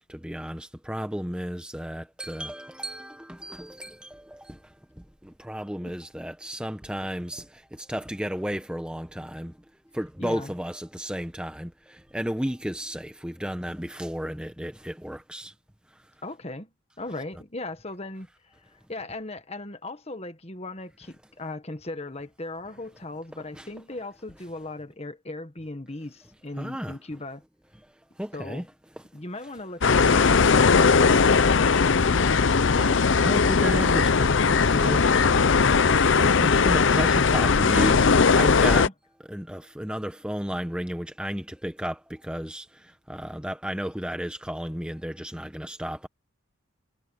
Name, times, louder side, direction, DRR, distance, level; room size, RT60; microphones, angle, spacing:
voice 1, 0.0-9.6 9.9-15.5 15.9-16.0 23.5-23.7 26.6-27.0 28.2-28.6 29.0-29.1 30.2-30.3 32.8-38.9 39.3-46.1, equal, 5° right, 1.0 m, -33 dB
voice 2, 10.2-10.5 16.2-16.7 17.0-18.3 18.6-27.4 28.3-28.7 29.1-32.5 38.5-38.9, left 2 dB, 30° left, 1.5 m, -37 dB
sound 1, 29.8-38.9, left 5 dB, 60° left, 0.6 m, -19 dB
head